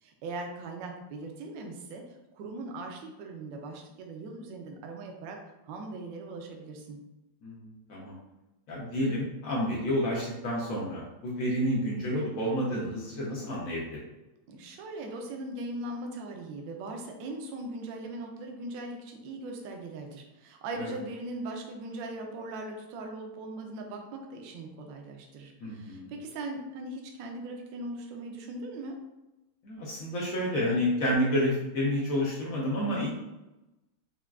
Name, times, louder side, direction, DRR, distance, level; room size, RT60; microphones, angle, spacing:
voice 1, 0.0-2.0 2.3-5.4 5.6-7.0 14.5-28.9, right 2 dB, 70° right, 2 dB, 1.2 m, -39 dB
voice 2, 7.4-8.2 8.7-14.0 20.8-20.9 25.6-26.1 29.6-33.1, equal, 80° left, -4 dB, 0.7 m, -30 dB
5.6 x 2.3 x 2.3 m, 0.99 s
omnidirectional pair, 2.4 m